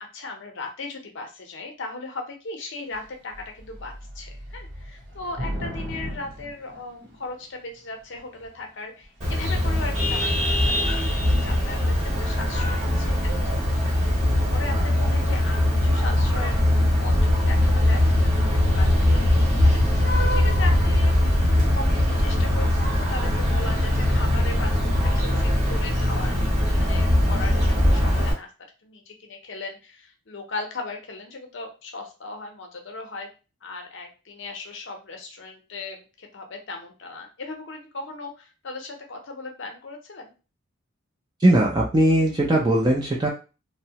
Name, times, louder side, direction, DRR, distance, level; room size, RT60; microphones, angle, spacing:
voice 1, 0.0-13.3 13.9-19.3 19.6-26.4 26.7-28.5 28.8-33.3 33.6-40.3, left 3 dB, 55° left, 3 dB, 0.6 m, -38 dB
Thunder / Rain, 2.9-3.1 3.3-7.4 8.2-8.6 9.0-9.2 9.4-13.2, equal, 55° right, 0.8 m, -37 dB
Vehicle horn car horn honking, 9.2-28.3, left 1 dB, 35° right, 1.1 m, -21 dB
voice 2, 41.4-43.3, right 1 dB, 20° right, -2 dB, 0.4 m, -19 dB
2.8 x 2.1 x 2.8 m, 0.32 s
head